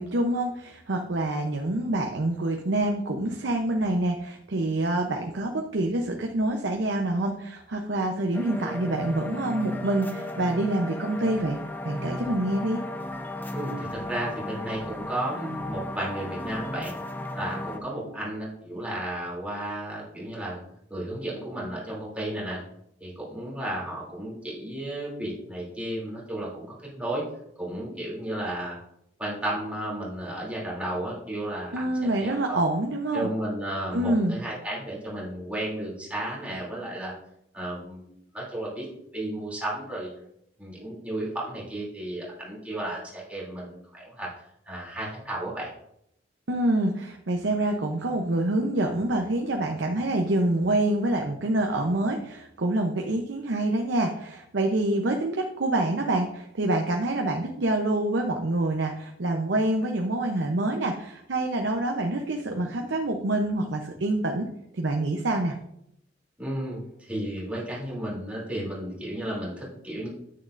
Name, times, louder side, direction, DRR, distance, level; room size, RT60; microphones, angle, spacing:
voice 1, 0.0-11.6 11.8-12.8 31.7-33.3 33.9-34.4 46.5-64.5 64.7-65.6, right 1 dB, 80° right, 2 dB, 0.8 m, -26 dB
sound 1, 8.3-17.8, left 1 dB, 10° left, 0.6 m, -35 dB
voice 2, 13.5-16.9 17.3-20.6 20.9-22.6 23.0-27.2 27.6-28.7 29.2-32.6 33.1-37.1 37.5-38.1 38.3-38.9 39.1-40.3 40.6-44.3 44.7-45.7 66.4-70.1, right 1 dB, 10° right, -5 dB, 2.9 m, -33 dB
9.7 x 8.7 x 2.6 m, 0.77 s
head